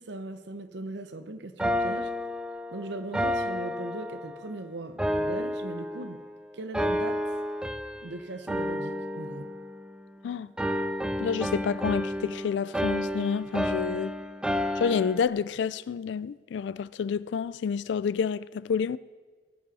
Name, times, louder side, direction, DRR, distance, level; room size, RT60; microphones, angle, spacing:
voice 1, 0.0-2.1 2.7-6.2 6.5-7.2 8.0-9.5, right 2 dB, 70° right, 0.8 m, -39 dB
sound 1, 1.6-4.5 5.0-6.3 6.7-8.1 8.5-10.2 10.6-15.3, equal, 5° right, 0.4 m, -31 dB
voice 2, 11.2-14.1 14.8-19.0, left 6 dB, 70° left, 0.3 m, -29 dB
20.0 x 7.8 x 4.1 m
head